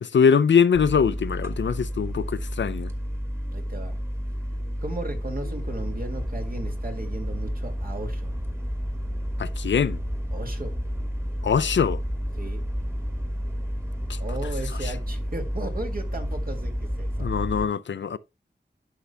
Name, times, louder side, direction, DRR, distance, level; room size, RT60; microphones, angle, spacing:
voice 1, 0.0-2.9 9.4-10.0 11.4-12.0 14.1-14.2 14.8-14.9 17.2-18.2, left 6 dB, 85° left, 0.5 m, -22 dB
sound 1, 0.7-17.6, equal, 15° right, 1.7 m, -30 dB
voice 2, 3.5-4.0 4.8-8.3 10.3-10.7 12.4-12.6 14.2-17.5, right 2 dB, 55° right, 2.2 m, -36 dB
11.5 x 5.6 x 2.2 m
wide cardioid pair, 80°, 18 cm